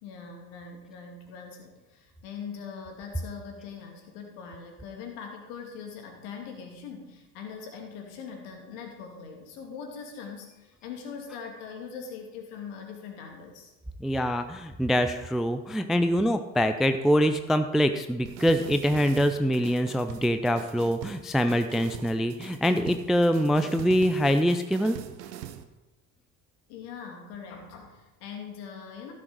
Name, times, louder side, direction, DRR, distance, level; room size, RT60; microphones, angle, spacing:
voice 1, 0.0-13.7 26.7-29.1, left 6 dB, 60° left, 2 dB, 2.6 m, -42 dB
voice 2, 14.0-25.0, equal, ahead, 9 dB, 0.4 m, -24 dB
sound 1, 18.3-25.6, right 10 dB, 70° right, 1.0 m, -43 dB
15.5 x 6.6 x 4.7 m, 1.1 s
figure-of-eight pair, 60°, 50 cm